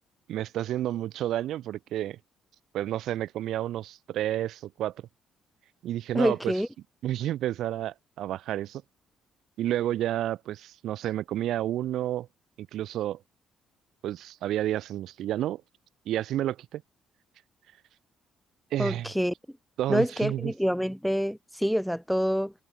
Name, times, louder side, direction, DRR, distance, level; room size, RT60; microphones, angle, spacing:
voice 1, 0.3-2.2 2.7-4.9 5.8-6.5 7.0-8.8 9.6-12.3 12.6-13.2 14.0-15.6 16.1-16.8 18.7-19.1 19.8-20.5, right 12 dB, 70° right, 0.8 m, -30 dB
voice 2, 6.1-6.7 18.8-19.3 19.9-22.5, equal, ahead, 0.4 m, -26 dB
cardioid pair, 140°, 0 cm